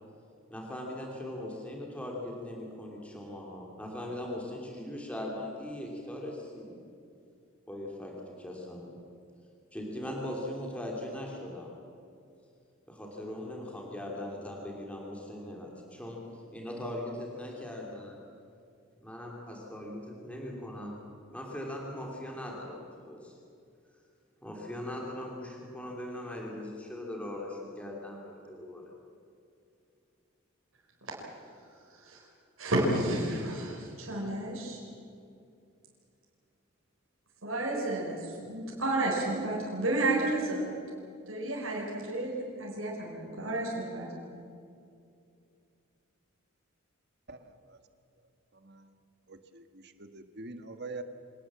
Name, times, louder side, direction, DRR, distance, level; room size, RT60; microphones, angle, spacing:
voice 1, 0.5-6.8 7.7-9.0 9.7-11.8 12.9-18.2 19.0-21.0 21.3-23.4 24.4-28.9, left 1 dB, 5° left, -2 dB, 3.0 m, -40 dB
voice 2, 31.9-32.3 32.6-34.8 37.4-40.7 41.3-42.3 42.6-44.1, right 1 dB, 90° right, -3 dB, 4.5 m, -31 dB
voice 3, 49.3-49.6 50.0-51.0, right 3 dB, 55° right, 8 dB, 1.5 m, -43 dB
25.5 x 19.0 x 7.5 m, 2.5 s
head